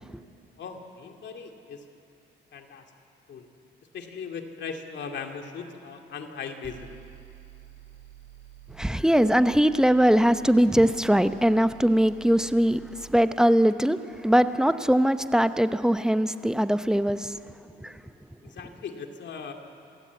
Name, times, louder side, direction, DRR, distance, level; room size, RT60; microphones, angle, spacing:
voice 1, 0.6-1.9 2.5-2.8 3.3-3.5 3.9-6.9 18.4-19.5, left 6 dB, 65° left, 4 dB, 2.5 m, -38 dB
sound 1, 6.6-13.0, right 12 dB, 65° right, 3.5 m, -49 dB
voice 2, 8.8-17.3 17.8-17.9, equal, 5° right, 11 dB, 0.8 m, -21 dB
27.5 x 15.5 x 8.4 m, 2.8 s
cardioid pair, 90°, 20 cm